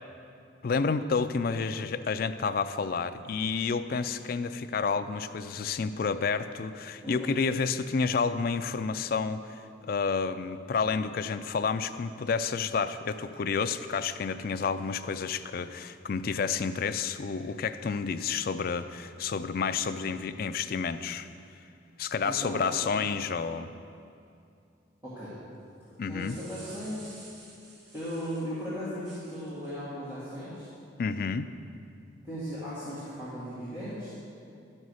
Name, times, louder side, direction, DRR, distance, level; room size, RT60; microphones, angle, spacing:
voice 1, 0.6-9.6 9.9-21.3 22.0-23.7 26.0-26.4 31.0-31.5, left 5 dB, 45° left, 10 dB, 0.3 m, -30 dB
voice 2, 7.0-7.4 22.2-22.8 25.0-25.3 26.1-27.1 27.9-30.7 32.2-34.1, equal, 15° right, -13 dB, 2.0 m, -37 dB
sound 1, 25.9-28.5 29.0-29.7, right 2 dB, 60° right, 1.6 m, -51 dB
12.0 x 5.4 x 6.3 m, 2.6 s
head